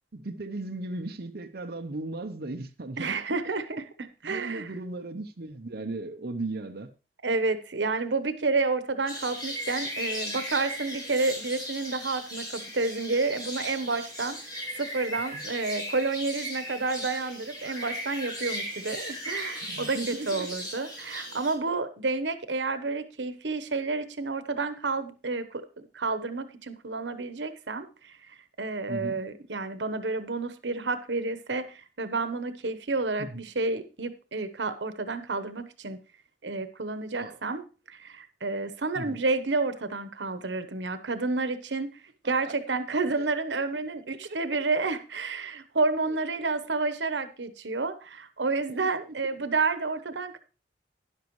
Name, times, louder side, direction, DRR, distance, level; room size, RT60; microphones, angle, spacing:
voice 1, 0.1-3.2 3.4-3.6 4.2-6.9 15.3-15.4 19.6-20.6 28.9-29.2 33.2-33.4 37.1-37.4 38.9-39.2 42.2-42.8 43.2-43.3 44.1-44.6 46.1-46.2 49.1-49.4, right 2 dB, 60° right, 0.8 m, -37 dB
voice 2, 3.0-4.7 7.2-14.4 14.8-27.9 28.6-36.0 36.4-41.9 42.2-50.4, right 3 dB, 90° right, 1.1 m, -30 dB
sound 1, 9.1-21.5, equal, 25° left, 4.6 m, -37 dB
12.5 x 10.5 x 3.2 m
head